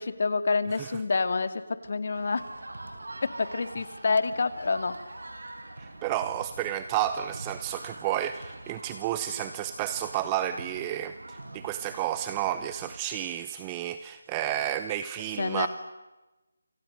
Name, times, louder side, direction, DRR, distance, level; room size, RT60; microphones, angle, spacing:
voice 1, 0.0-2.4 3.4-4.9 15.4-15.7, left 4 dB, 55° left, 12 dB, 2.4 m, -27 dB
sound 1, 2.1-13.0, right 2 dB, 85° right, 5.4 m, -44 dB
voice 2, 5.8-15.7, right 12 dB, 15° right, 12 dB, 0.8 m, -31 dB
29.5 x 26.5 x 6.5 m, 1.1 s
figure-of-eight pair, 170°, 0 cm